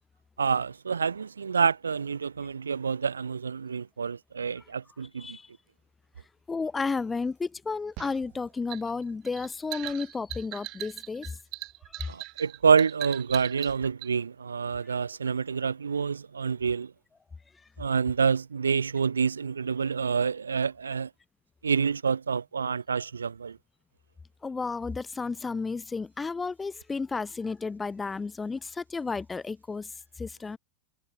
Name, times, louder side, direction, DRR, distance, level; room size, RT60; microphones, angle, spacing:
voice 1, 0.4-5.4 12.1-16.9 17.8-21.1 21.6-23.6, right 6 dB, 75° right, 0.7 m, -27 dB
voice 2, 6.5-11.3 11.9-12.1 24.4-29.9 30.2-30.6, left 4 dB, 15° left, 0.5 m, -32 dB
sound 1, 8.0-14.1, right 22 dB, 40° right, 1.7 m, -40 dB
figure-of-eight pair, 90°, 0 cm